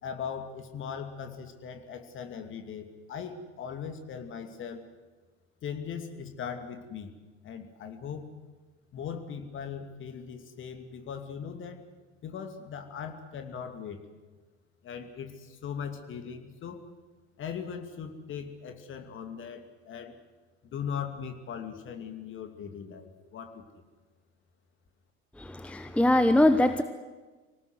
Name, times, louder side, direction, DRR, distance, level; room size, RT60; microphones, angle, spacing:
voice 1, 0.0-4.8 5.6-7.1 7.4-8.3 8.9-11.8 12.2-14.0 14.8-17.0 17.4-20.2 20.6-23.6, left 7 dB, 35° left, 7 dB, 2.7 m, -39 dB
voice 2, 25.4-26.8, left 1 dB, 5° left, 10 dB, 0.9 m, -22 dB
26.0 x 18.5 x 8.0 m, 1.3 s
figure-of-eight pair, 70°, 35 cm